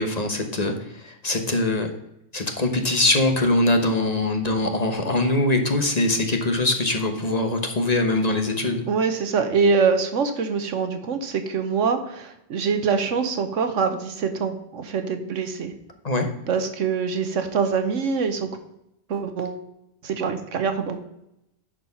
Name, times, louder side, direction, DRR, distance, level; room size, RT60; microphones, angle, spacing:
voice 1, 0.0-1.9 2.3-8.8 16.0-16.3, left 2 dB, 35° left, 5 dB, 1.1 m, -22 dB
voice 2, 8.9-15.8 16.5-18.5 19.1-19.6 20.0-21.1, right 5 dB, 90° right, 8 dB, 1.3 m, -24 dB
10.0 x 4.7 x 5.7 m, 0.82 s
omnidirectional pair, 1.2 m